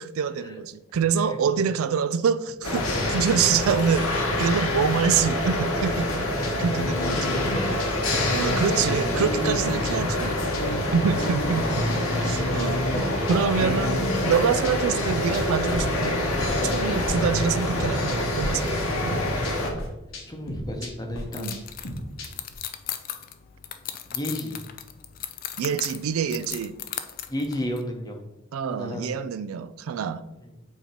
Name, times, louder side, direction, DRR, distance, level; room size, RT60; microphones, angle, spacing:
voice 1, 0.0-2.8 3.1-7.2 8.3-10.4 10.9-11.8 12.2-12.8 13.3-14.0 14.2-16.2 16.6-19.2 21.4-21.6 25.6-26.8 28.5-30.2, right 6 dB, 85° right, 14 dB, 0.3 m, -26 dB
sound 1, 2.6-19.7, left 1 dB, 90° left, 1.3 m, -26 dB
voice 2, 2.7-3.3 7.1-7.8 11.7-11.9 16.8-17.1 20.3-21.5 22.1-22.2 24.1-24.6 27.3-28.2 28.7-29.1 30.4-30.5, left 1 dB, 20° left, 2 dB, 0.8 m, -33 dB
sound 2, 6.1-17.1 17.4-18.5 18.8-22.5, left 1 dB, 70° left, 1.1 m, -33 dB
sound 3, 21.3-27.8, left 10 dB, 40° left, 0.3 m, -37 dB
8.1 x 2.9 x 4.4 m, 0.95 s
head